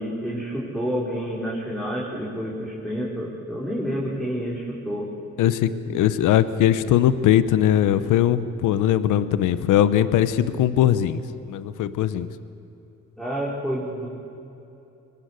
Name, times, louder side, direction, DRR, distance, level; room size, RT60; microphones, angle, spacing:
voice 1, 0.0-5.1 13.2-14.1, equal, ahead, -6 dB, 4.8 m, -29 dB
voice 2, 5.4-11.2 11.5-12.3, left 11 dB, 85° left, 14 dB, 1.0 m, -20 dB
24.0 x 19.5 x 8.3 m, 2.9 s
cardioid pair, 90°, 30 cm